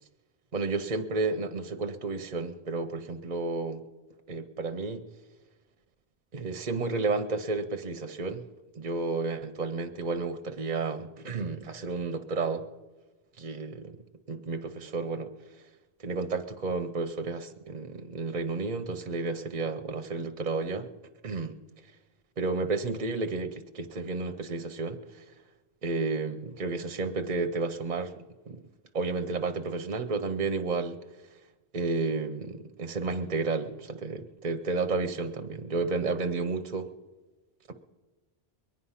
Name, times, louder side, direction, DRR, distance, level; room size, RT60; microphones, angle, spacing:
voice 1, 0.5-3.8 4.3-5.0 6.3-8.5 8.7-12.7 13.4-14.0 14.3-15.3 16.0-20.9 21.2-21.5 22.4-25.2 25.8-28.1 28.5-28.6 28.9-31.0 31.7-36.9 37.7-37.8, right 3 dB, 50° right, 8 dB, 0.8 m, -31 dB
22.0 x 9.6 x 5.6 m, 1.2 s
omnidirectional pair, 1.0 m